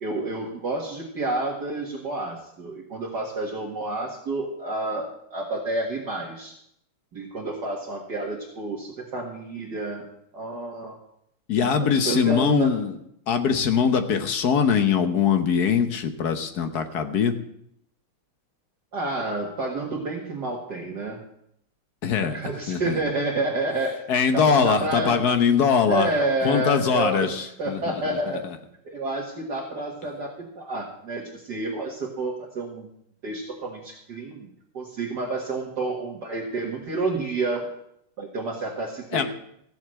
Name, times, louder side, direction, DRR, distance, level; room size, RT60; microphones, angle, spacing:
voice 1, 0.0-6.5 7.1-10.1 10.3-11.0 11.8-12.8 18.9-21.2 22.2-24.0 24.3-25.2 25.8-28.5 28.8-32.9 33.2-34.5 34.7-37.7 38.2-39.2, right 2 dB, 50° right, -3 dB, 2.3 m, -29 dB
voice 2, 11.5-12.9 13.3-17.3 22.0-22.4 22.7-23.0 24.1-26.1 26.4-27.8 28.3-28.6 39.1-39.2, left 6 dB, 55° left, 7 dB, 1.4 m, -22 dB
15.0 x 7.3 x 7.6 m, 0.73 s
omnidirectional pair, 2.4 m